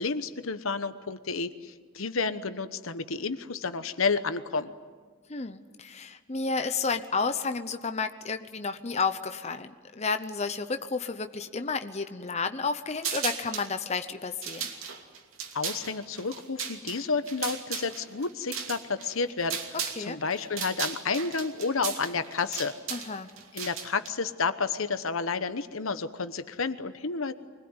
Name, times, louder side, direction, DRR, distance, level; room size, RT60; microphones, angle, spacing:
voice 1, 0.0-4.7 15.5-22.7 23.5-27.3, left 4 dB, 80° left, 11 dB, 1.1 m, -31 dB
voice 2, 5.3-14.7 20.0-20.2 22.9-23.3, left 4 dB, 30° left, 8 dB, 0.8 m, -31 dB
Metallic Clicking Various, 13.0-13.7 14.3-20.0 20.3-24.1, right 7 dB, 75° right, 2.7 m, -36 dB
24.5 x 20.5 x 9.8 m, 1.5 s
head